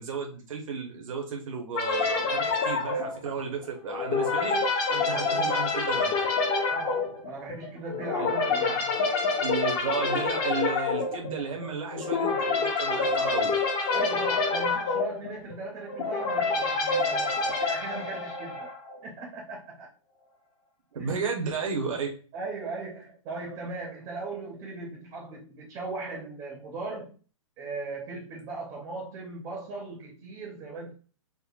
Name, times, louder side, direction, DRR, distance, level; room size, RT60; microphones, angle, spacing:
voice 1, 0.0-4.6 4.9-6.1 8.2-8.3 9.4-13.5 20.9-22.1, right 5 dB, 75° right, 1 dB, 0.8 m, -33 dB
sound 1, 1.7-18.9, left 4 dB, 25° left, 0.5 m, -27 dB
voice 2, 6.7-9.0 13.9-18.7 19.0-19.9 21.0-21.1 22.3-27.1 27.6-30.9, right 3 dB, 20° right, -1 dB, 0.5 m, -38 dB
3.6 x 2.1 x 2.3 m, 0.39 s
hypercardioid pair, 155°, 17 cm